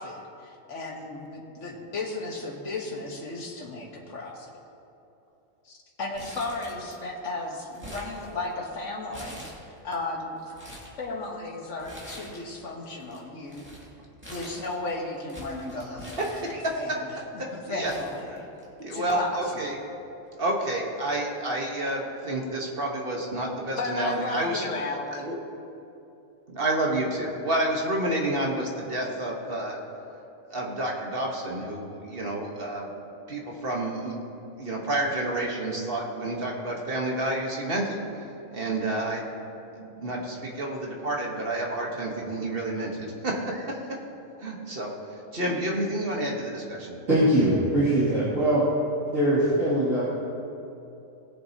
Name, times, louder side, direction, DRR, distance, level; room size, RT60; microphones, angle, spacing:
voice 1, 0.0-4.5 5.6-9.4 9.8-10.4 11.0-13.7 14.2-16.4 16.8-17.0 17.5-18.5 18.9-19.6 23.8-25.4, left 2 dB, 65° left, 0 dB, 1.6 m, -34 dB
Crumpling crinkling, 6.1-7.2 7.4-8.7 9.1-9.9 10.4-11.0 11.8-12.6 12.8-16.9 17.5-17.6 17.8-18.9 19.2-19.3 20.3-20.5, equal, 10° right, 2.1 m, -45 dB
voice 2, 16.3-17.0 17.7-17.9 18.3-18.4 18.8-19.8 20.4-24.6 25.2-25.4 26.5-29.8 30.5-32.9 33.3-34.2 34.6-39.3 39.7-43.8 44.4-47.0, right 1 dB, 45° right, -1 dB, 1.4 m, -29 dB
voice 3, 47.1-48.6 49.0-50.0, right 1 dB, 70° right, -13 dB, 3.0 m, -22 dB
19.0 x 7.5 x 2.8 m, 2.8 s
omnidirectional pair, 1.4 m